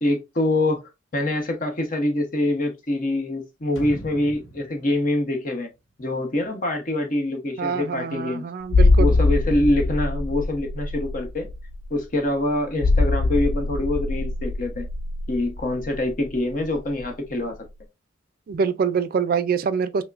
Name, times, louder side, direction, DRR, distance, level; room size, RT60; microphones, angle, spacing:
voice 1, 0.0-5.7 6.0-8.5 9.0-11.5 11.9-14.9 15.3-17.5, left 1 dB, 45° left, 0.9 m, -25 dB
sound 1, 3.8-6.6 6.9-7.0, equal, 90° left, 0.8 m, -41 dB
voice 2, 7.6-9.2 18.5-20.0, right 6 dB, 50° right, 0.3 m, -25 dB
sound 2, 8.7-17.1 17.4-17.5, left 2 dB, 70° left, 0.3 m, -23 dB
5.5 x 2.1 x 2.4 m
head